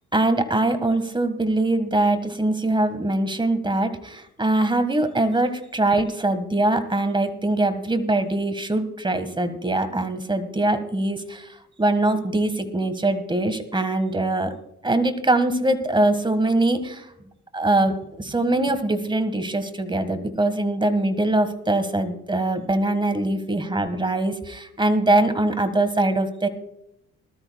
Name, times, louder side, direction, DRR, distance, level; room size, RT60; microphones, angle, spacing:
voice 1, 0.1-11.5 11.8-14.6 14.8-17.1 17.5-26.5, right 2 dB, 15° right, 10 dB, 1.7 m, -22 dB
20.0 x 13.0 x 2.3 m, 0.78 s
cardioid pair, 90°, 30 cm